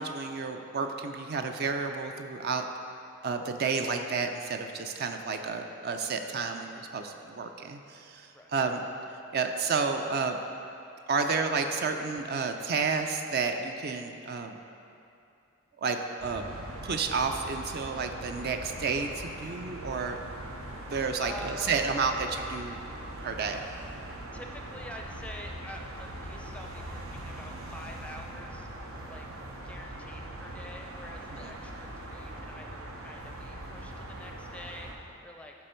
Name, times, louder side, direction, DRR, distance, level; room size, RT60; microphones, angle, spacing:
voice 1, 0.0-2.6 3.2-8.9 9.3-10.4 11.1-14.6 15.8-16.4 16.8-20.2 20.9-22.8 23.2-23.6 31.4-31.5, right 4 dB, 50° right, 5 dB, 0.4 m, -31 dB
sound 1, 16.2-34.9, right 1 dB, 85° right, 1.0 m, -41 dB
voice 2, 21.2-21.9 24.3-28.7 29.1-29.3 29.5-35.5, left 1 dB, 5° left, 2 dB, 0.5 m, -46 dB
11.5 x 4.3 x 4.4 m, 2.6 s
head